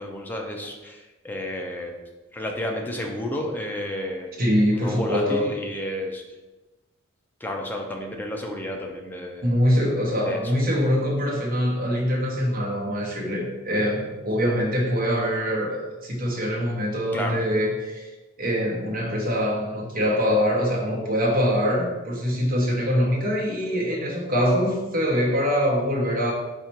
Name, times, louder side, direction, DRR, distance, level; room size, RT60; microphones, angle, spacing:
voice 1, 0.0-2.0 2.3-4.4 4.7-6.2 7.4-9.5 10.3-10.5 17.1-17.4, left 1 dB, 10° left, 1 dB, 0.5 m, -31 dB
voice 2, 4.4-5.5 9.4-18.1 18.4-26.3, equal, 45° right, -3 dB, 1.0 m, -24 dB
4.1 x 2.4 x 4.4 m, 1.1 s
head